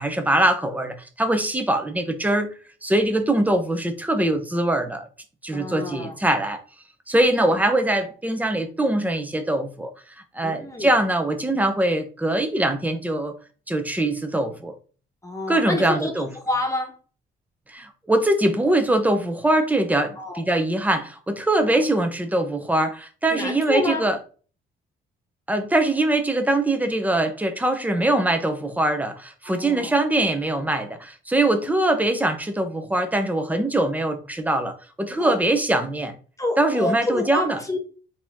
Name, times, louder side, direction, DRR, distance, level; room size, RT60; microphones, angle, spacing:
voice 1, 0.0-2.5 2.8-5.1 5.4-6.6 7.1-9.9 10.3-13.3 13.7-14.7 15.5-16.3 17.7-24.2 25.5-36.1 36.6-37.6, right 1 dB, 10° right, 0.8 m, -22 dB
voice 2, 5.5-6.1 7.3-7.6 10.4-10.9 15.2-16.9 20.2-20.4 21.7-21.8 23.3-24.1 29.4-29.9 35.2-35.4 36.4-37.8, left 2 dB, 15° left, 1.3 m, -28 dB
4.0 x 3.0 x 3.7 m
cardioid pair, 90°, 20 cm